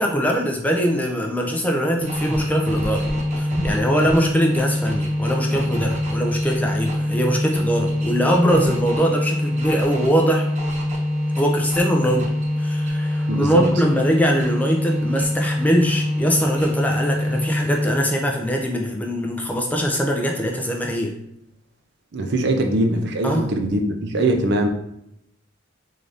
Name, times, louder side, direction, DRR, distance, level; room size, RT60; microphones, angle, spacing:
voice 1, 0.0-3.1 3.4-10.5 11.4-21.1 23.2-23.5, equal, 10° left, 1 dB, 0.4 m, -22 dB
sound 1, 2.0-18.1, left 1 dB, 40° right, 0.9 m, -24 dB
voice 2, 13.3-13.7 22.1-24.7, right 1 dB, 60° right, 5 dB, 0.5 m, -21 dB
3.7 x 2.6 x 3.3 m, 0.79 s
head